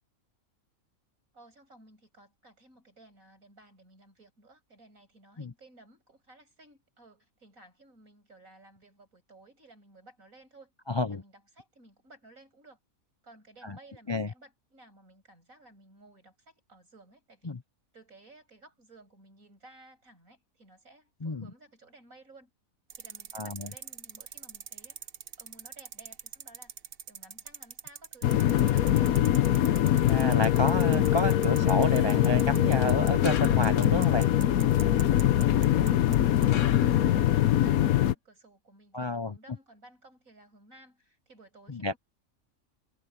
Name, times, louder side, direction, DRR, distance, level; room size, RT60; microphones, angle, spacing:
voice 1, 1.3-10.7 11.1-12.8 13.2-17.6 17.9-22.5 23.0-25.1 25.4-26.7 27.1-29.4 35.6-42.0, right 2 dB, 70° right, 8.2 m, -56 dB
voice 2, 10.9-11.2 13.6-13.8 14.1-14.3 17.4-17.6 21.2-21.5 23.3-23.7 30.1-34.3 38.9-39.4 41.7-41.9, left 2 dB, 30° left, 0.5 m, -30 dB
sound 1, 22.9-36.2 36.4-36.5, right 7 dB, 50° right, 0.9 m, -43 dB
sound 2, 28.2-38.1, left 12 dB, 90° left, 1.2 m, -23 dB
sound 3, 33.2-34.1 36.5-37.4, left 9 dB, 65° left, 1.2 m, -41 dB
omnidirectional pair, 1.5 m